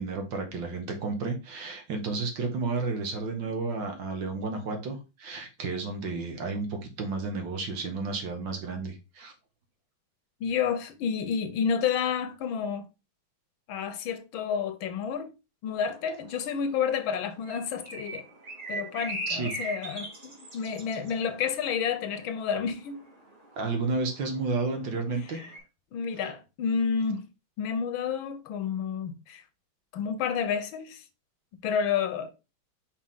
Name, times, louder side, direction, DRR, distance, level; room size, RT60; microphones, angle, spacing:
voice 1, 0.0-9.3 19.3-19.5 23.6-25.4 26.2-26.3, right 3 dB, 65° right, 2.0 m, -32 dB
voice 2, 10.4-12.9 13.7-15.3 15.6-18.2 18.7-23.0 25.9-27.3 27.6-29.4 29.9-31.0 31.6-32.3, left 7 dB, 80° left, 1.6 m, -30 dB
sound 1, 15.7-25.6, right 2 dB, 25° right, 2.1 m, -42 dB
5.3 x 4.9 x 3.7 m
omnidirectional pair, 2.2 m